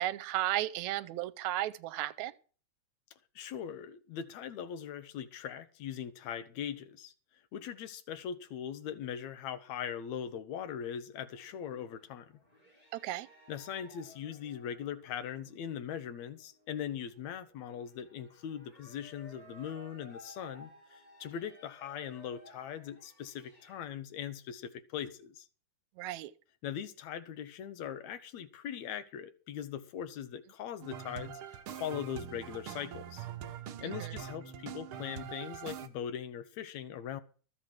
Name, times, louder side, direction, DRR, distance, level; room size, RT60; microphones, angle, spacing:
voice 1, 0.0-2.3 12.9-13.3 26.0-26.3 33.8-34.1, right 14 dB, 80° right, 2.0 m, -34 dB
voice 2, 3.4-7.1 7.5-12.3 13.5-25.5 26.6-33.3 33.8-37.2, left 9 dB, 75° left, 2.3 m, -40 dB
sound 1, 11.3-23.8, equal, 15° left, 4.5 m, -58 dB
sound 2, 30.8-35.9, right 9 dB, 65° right, 1.5 m, -43 dB
13.5 x 7.9 x 6.2 m
omnidirectional pair, 3.3 m